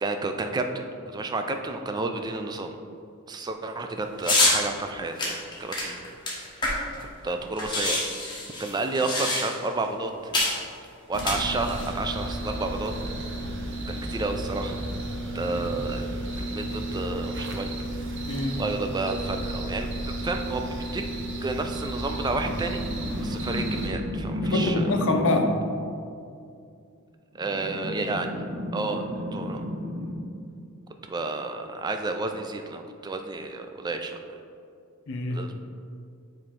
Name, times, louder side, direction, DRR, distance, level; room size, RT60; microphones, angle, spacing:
voice 1, 0.0-2.7 3.3-6.0 6.5-6.8 7.2-8.0 8.6-10.3 11.1-12.9 13.9-14.8 15.3-16.1 16.4-17.7 18.6-21.0 21.4-22.8 23.2-24.8 27.4-28.3 28.7-29.0 29.3-29.6 31.1-34.2 35.3-35.6, right 3 dB, 20° right, 5 dB, 0.3 m, -31 dB
sound 1, 4.2-4.6 5.2-7.0 7.3-7.4 7.6-9.7 10.3-10.6 11.1-11.9, left 2 dB, 20° left, 1.1 m, -26 dB
sound 2, 11.1-23.9, right 1 dB, 55° right, 0.7 m, -33 dB
voice 2, 18.3-18.6 24.4-25.6 35.1-35.5, left 2 dB, 60° left, 4 dB, 0.6 m, -27 dB
sound 3, 22.3-25.6 27.4-30.1, equal, 85° right, 1.1 m, -31 dB
7.4 x 3.2 x 4.3 m, 2.5 s
head